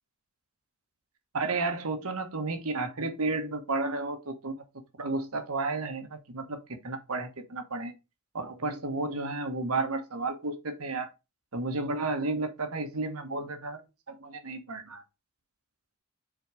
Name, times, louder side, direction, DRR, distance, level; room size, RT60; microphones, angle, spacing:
voice 1, 1.3-4.6 5.0-6.6 6.8-7.9 8.3-11.1 11.5-13.8 14.1-15.0, right 3 dB, 85° right, 1.3 m, -32 dB
6.3 x 3.9 x 4.9 m
head